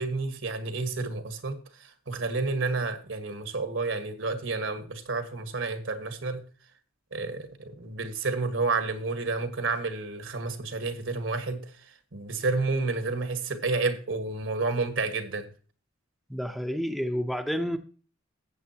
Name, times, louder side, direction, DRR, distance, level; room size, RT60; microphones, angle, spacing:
voice 1, 0.0-6.5 7.1-11.7 12.1-15.5, right 3 dB, 70° right, 1.7 m, -30 dB
voice 2, 16.3-17.8, equal, ahead, 0.7 m, -29 dB
14.5 x 8.3 x 2.9 m
head